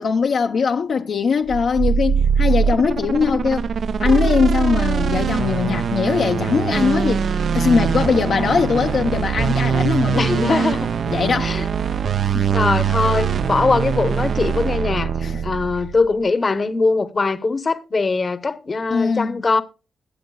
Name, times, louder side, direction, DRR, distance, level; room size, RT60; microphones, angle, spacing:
voice 1, 0.0-3.7 4.0-7.3 7.5-10.7 11.1-11.6 12.3-12.5 15.2-15.4 18.9-19.4, left 5 dB, 60° left, 0.7 m, -20 dB
sound 1, 1.5-16.1, right 6 dB, 60° right, 0.6 m, -22 dB
voice 2, 10.2-10.9 11.4-11.6 12.5-15.1 15.4-19.6, left 3 dB, 35° left, 1.0 m, -21 dB
22.0 x 7.8 x 2.3 m
cardioid pair, 115°, 0 cm